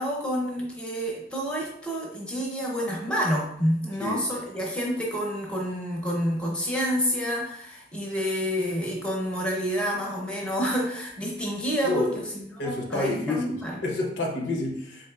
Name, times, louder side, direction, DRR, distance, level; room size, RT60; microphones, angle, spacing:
voice 1, 0.0-12.3 12.6-13.8, equal, 5° left, -2 dB, 0.7 m, -28 dB
voice 2, 12.6-13.6 13.8-15.1, left 2 dB, 70° left, 1 dB, 0.7 m, -28 dB
3.8 x 3.5 x 2.3 m, 0.70 s
head